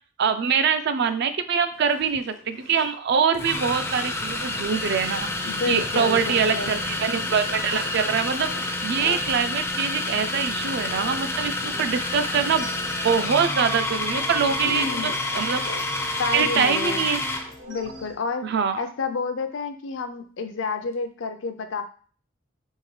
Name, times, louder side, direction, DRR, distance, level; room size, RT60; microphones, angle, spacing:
voice 1, 0.2-12.7 13.0-15.8 16.3-17.2 18.4-18.8, right 6 dB, 60° right, 10 dB, 0.4 m, -24 dB
Zipper (clothing), 1.1-1.2 1.6-2.9 3.5-3.6 4.0-4.1 4.5-4.6 4.9-6.3 6.5-7.9 8.3-11.3 11.6-11.9 12.3-15.9 16.9-17.6, left 2 dB, 90° left, 0.9 m, -44 dB
sound 1, 2.0-2.2 3.3-17.5, left 2 dB, 15° left, 0.4 m, -29 dB
voice 2, 5.4-6.8 14.6-15.1 16.2-17.1 17.7-18.5 18.8-21.8, left 4 dB, 70° left, 7 dB, 0.5 m, -29 dB
sound 2, 10.6-18.1, equal, 75° right, 0.8 m, -43 dB
3.6 x 3.4 x 3.1 m, 0.43 s
head